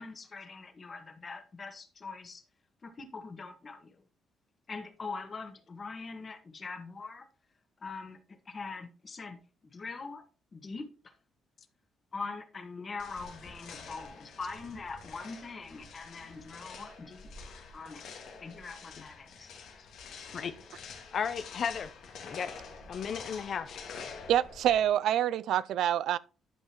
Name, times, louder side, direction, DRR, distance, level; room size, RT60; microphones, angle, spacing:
voice 1, 0.0-2.4 2.8-4.0 4.7-7.3 7.8-8.2 8.4-10.2 10.5-11.2 12.1-17.3 17.7-18.0 18.4-19.5, left 4 dB, 35° left, 1.5 m, -42 dB
sound 1, 13.0-24.9, left 5 dB, 80° left, 2.0 m, -47 dB
voice 2, 21.1-21.9 22.2-22.5 22.9-23.8, left 7 dB, 55° left, 0.6 m, -34 dB
voice 3, 24.3-26.2, right 11 dB, 80° right, 0.3 m, -26 dB
12.0 x 5.4 x 3.0 m
cardioid pair, 90°, 0 cm